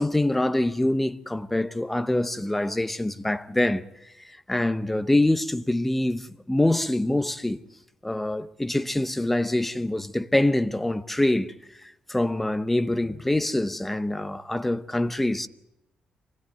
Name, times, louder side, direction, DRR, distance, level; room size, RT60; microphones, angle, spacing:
voice 1, 0.0-3.8 4.3-7.6 8.0-11.5 11.8-15.5, left 1 dB, 5° left, 0.7 m, -25 dB
24.5 x 17.0 x 9.1 m
cardioid pair, 165°, 2 cm